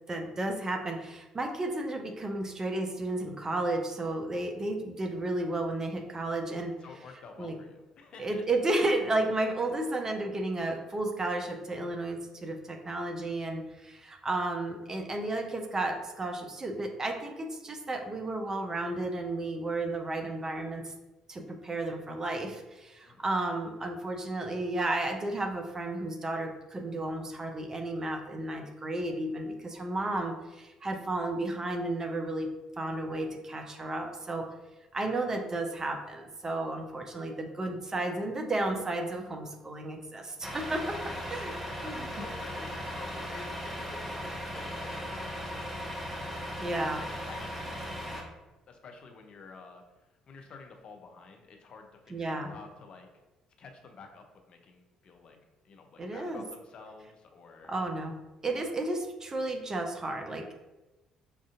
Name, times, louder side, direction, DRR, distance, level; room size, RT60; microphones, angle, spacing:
voice 1, 0.1-6.8 7.4-7.6 8.2-20.9 21.3-34.5 34.9-41.0 41.3-41.5 41.8-42.3 46.6-47.0 52.1-52.5 56.0-56.4 57.7-58.2 58.4-60.5, right 2 dB, 25° right, 4 dB, 0.5 m, -33 dB
voice 2, 6.8-8.4 23.0-23.3 40.2-40.5 41.0-41.3 41.8-45.9 46.8-47.9 48.7-49.8 50.3-53.1 53.6-55.4 55.6-57.8, left 4 dB, 45° left, 4 dB, 0.5 m, -50 dB
Truck, 40.4-48.2, equal, 5° right, 0.9 m, -37 dB
5.1 x 2.4 x 2.4 m, 1.1 s
figure-of-eight pair, 50°, 2 cm